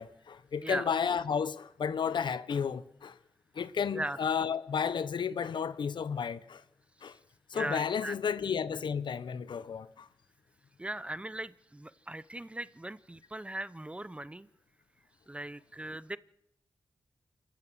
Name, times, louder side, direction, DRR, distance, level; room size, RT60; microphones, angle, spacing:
voice 1, 0.0-3.2 3.5-6.6 7.0-7.2 7.5-10.1, left 7 dB, 80° left, 1.0 m, -32 dB
voice 2, 0.6-1.0 3.9-4.2 7.0-7.1 7.5-8.2 10.8-14.5 15.3-16.2, right 1 dB, 15° right, 0.7 m, -39 dB
28.0 x 13.0 x 7.7 m
cardioid pair, 75°, 8 cm